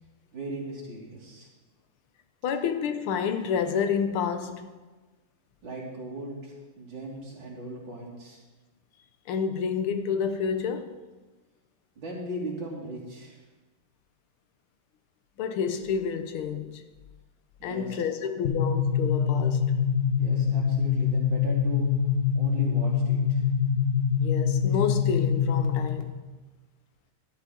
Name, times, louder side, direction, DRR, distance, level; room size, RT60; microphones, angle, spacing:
voice 1, 0.3-1.5 5.6-8.4 12.0-13.4 17.6-18.0 20.2-21.9 22.3-23.4, right 1 dB, 65° right, 3.4 m, -38 dB
voice 2, 2.4-4.6 9.3-11.0 15.4-16.8 17.6-19.8 24.2-26.2, left 7 dB, 90° left, 1.8 m, -29 dB
sound 1, 18.4-26.0, left 7 dB, 40° left, 0.9 m, -24 dB
12.5 x 11.0 x 3.9 m
omnidirectional pair, 2.3 m